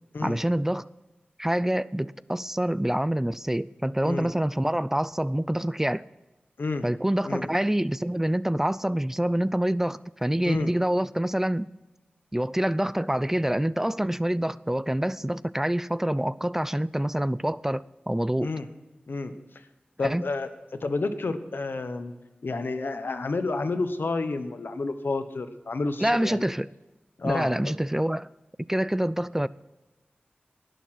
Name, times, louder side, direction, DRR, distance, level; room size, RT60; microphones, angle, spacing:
voice 1, 0.2-0.9 1.4-6.1 6.8-11.7 12.3-18.5 20.0-20.2 26.0-26.7 27.2-28.3 28.6-29.5, right 1 dB, 10° right, 0.3 m, -26 dB
voice 2, 20.0-20.5 20.8-22.1 22.4-26.4 27.2-27.7, left 3 dB, 80° left, 1.2 m, -30 dB
19.5 x 6.8 x 5.9 m
wide cardioid pair, 60°, 4 cm